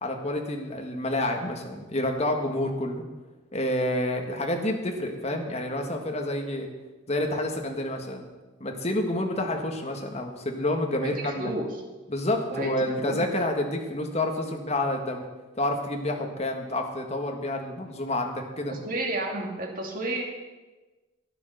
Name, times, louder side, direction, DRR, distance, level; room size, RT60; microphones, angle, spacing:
voice 1, 0.0-3.0 3.5-6.7 7.1-8.2 8.6-11.5 12.1-15.2 15.6-18.7, left 1 dB, 35° left, 3 dB, 1.7 m, -29 dB
voice 2, 10.9-11.8 12.5-13.3 14.4-14.6 16.2-16.3 18.7-20.2, right 2 dB, 45° right, 1 dB, 2.4 m, -32 dB
12.0 x 10.0 x 6.7 m, 1.2 s
head